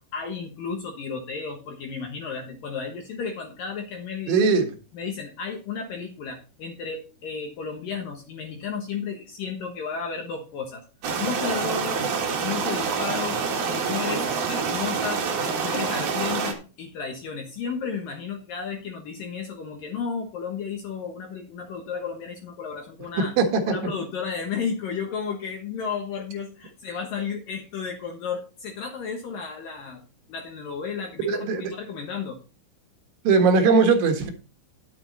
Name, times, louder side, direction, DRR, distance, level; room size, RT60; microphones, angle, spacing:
voice 1, 0.1-4.6 4.9-10.8 11.2-12.1 12.4-15.2 15.5-23.3 23.7-30.0 30.3-32.4, left 6 dB, 65° left, 3 dB, 2.3 m, -33 dB
voice 2, 4.3-4.7 23.4-23.7 31.2-31.6 33.3-34.3, right 4 dB, 75° right, 5 dB, 3.9 m, -19 dB
sound 1, 11.0-16.5, right 5 dB, 55° right, 2.6 m, -27 dB
10.5 x 8.7 x 4.1 m, 0.33 s
omnidirectional pair, 5.5 m